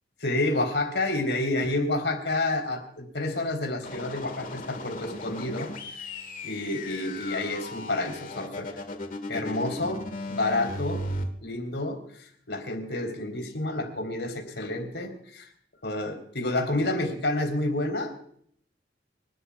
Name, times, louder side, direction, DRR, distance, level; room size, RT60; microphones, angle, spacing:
voice 1, 0.2-6.1 6.4-8.7 9.3-10.0 10.3-11.0 11.4-15.5 15.8-18.1, left 2 dB, 80° left, 4 dB, 4.0 m, -29 dB
sound 1, 3.8-11.2, left 1 dB, 50° left, 1.8 m, -37 dB
26.0 x 13.0 x 2.4 m, 0.63 s
head